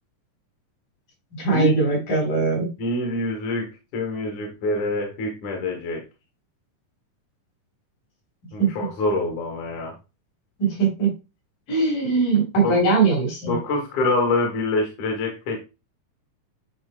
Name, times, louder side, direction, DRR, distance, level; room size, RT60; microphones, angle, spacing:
voice 1, 1.4-2.7 8.6-8.7 10.6-11.1 11.7-13.6, right 4 dB, 85° left, -3 dB, 5.5 m, -20 dB
voice 2, 2.8-6.0 8.5-9.9 12.6-12.8 13.5-15.6, left 2 dB, 70° left, 1 dB, 2.7 m, -25 dB
10.5 x 4.5 x 2.3 m, 0.28 s
omnidirectional pair, 3.7 m